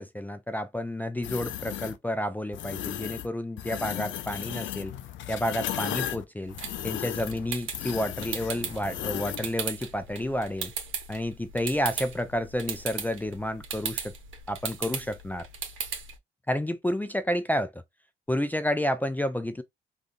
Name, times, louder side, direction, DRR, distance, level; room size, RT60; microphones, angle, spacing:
voice 1, 0.0-4.9 5.3-6.6 6.8-10.7 11.1-14.1 14.5-15.5 16.5-17.8 18.3-19.6, left 1 dB, 10° left, 0.4 m, -30 dB
sound 1, 1.2-2.0 2.5-3.3 3.6-9.5, left 12 dB, 75° left, 0.4 m, -35 dB
sound 2, 6.4-16.2, right 6 dB, 75° right, 0.8 m, -38 dB
3.6 x 2.4 x 2.5 m
cardioid pair, 90°, 20 cm